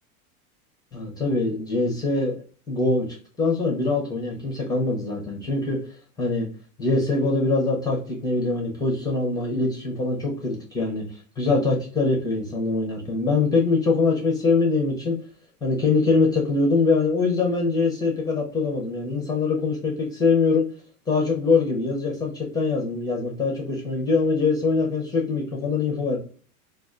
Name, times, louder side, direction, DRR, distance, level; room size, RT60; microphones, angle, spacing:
voice 1, 0.9-2.3 2.7-3.1 3.4-5.8 6.2-6.5 6.8-11.1 11.4-15.2 15.6-20.7 21.1-26.2, left 3 dB, 10° left, 0 dB, 0.5 m, -23 dB
3.4 x 2.4 x 2.3 m, 0.41 s
supercardioid pair, 130°, 45 cm